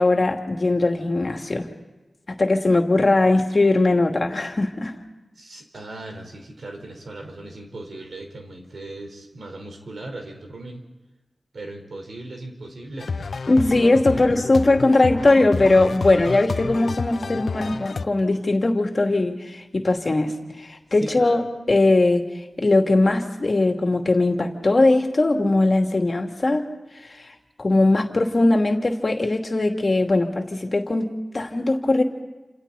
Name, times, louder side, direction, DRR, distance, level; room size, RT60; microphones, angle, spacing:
voice 1, 0.0-1.7 2.3-4.9 13.5-21.4 21.7-22.2 22.6-26.7 27.0-27.2 27.6-32.0, left 2 dB, 45° left, 3 dB, 2.7 m, -20 dB
voice 2, 5.4-10.8 11.5-13.7 14.1-14.2 21.0-21.5, right 2 dB, 70° right, 3 dB, 4.6 m, -38 dB
sound 1, 13.0-18.0, left 4 dB, 80° left, 0.8 m, -29 dB
29.0 x 27.5 x 4.2 m, 1.2 s
wide cardioid pair, 90°, 0 cm